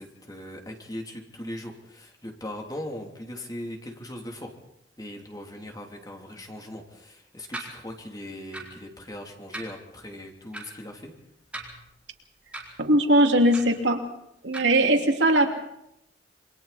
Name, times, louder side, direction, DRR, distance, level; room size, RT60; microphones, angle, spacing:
voice 1, 0.0-4.5 5.0-11.1, left 1 dB, 20° left, 2 dB, 3.2 m, -39 dB
sound 1, 7.5-7.7 8.5-8.8 9.5-9.7 10.5-10.6 11.5-12.0 12.5-12.7 13.5-13.8 14.5-14.6, right 2 dB, 5° right, 4.4 m, -38 dB
voice 2, 12.8-14.0 14.4-15.5, right 1 dB, 80° right, 3 dB, 2.8 m, -20 dB
27.5 x 24.0 x 4.3 m, 0.79 s
head